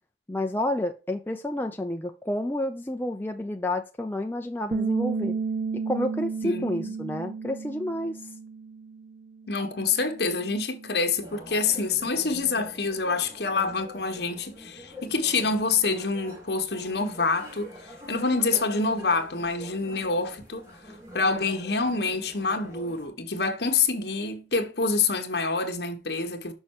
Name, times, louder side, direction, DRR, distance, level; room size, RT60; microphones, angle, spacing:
voice 1, 0.3-5.3 5.7-8.2, left 1 dB, 10° left, 0.6 m, -30 dB
Bass guitar, 4.7-10.9, right 5 dB, 55° right, 0.3 m, -33 dB
voice 2, 6.4-6.9 9.5-20.7 21.1-26.5, left 4 dB, 65° left, 1.4 m, -27 dB
sound 1, 11.2-23.1, equal, 20° right, 2.8 m, -45 dB
6.3 x 5.4 x 4.8 m
head